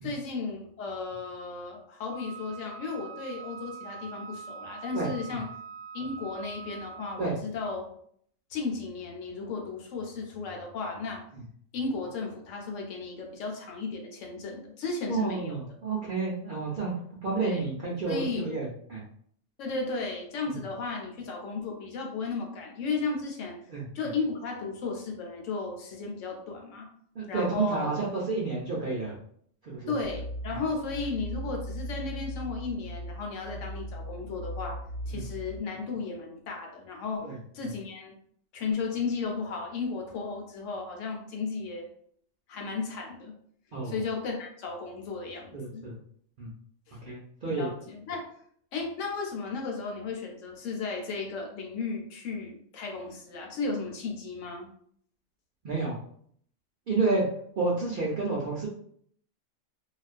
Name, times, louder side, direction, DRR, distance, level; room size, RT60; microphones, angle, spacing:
voice 1, 0.0-5.5 5.9-7.9 8.5-11.2 11.7-15.6 17.4-17.7 18.1-18.5 19.6-23.6 23.9-26.9 27.3-27.9 29.9-34.8 35.1-37.3 37.5-38.1 38.5-41.9 42.5-43.3 43.8-45.9 46.9-47.0 47.5-48.3 48.7-54.7, left 4 dB, 75° left, 1 dB, 1.0 m, -34 dB
Wind instrument woodwind instrument, 2.1-7.3, right 6 dB, 5° right, 0.7 m, -44 dB
voice 2, 4.9-5.4 7.2-7.3 11.3-11.4 15.1-16.9 17.2-19.0 20.5-20.6 23.7-24.1 27.2-29.2 29.6-29.9 30.5-30.6 35.1-35.2 37.2-37.4 37.6-37.7 43.7-43.9 45.5-45.9 46.4-46.5 47.0-47.7 55.6-56.0 56.9-57.2 57.6-58.7, right 3 dB, 60° right, -5 dB, 0.5 m, -30 dB
sound 1, 30.0-35.6, equal, 85° right, 1.0 m, -38 dB
2.4 x 2.2 x 2.4 m, 0.63 s
omnidirectional pair, 1.3 m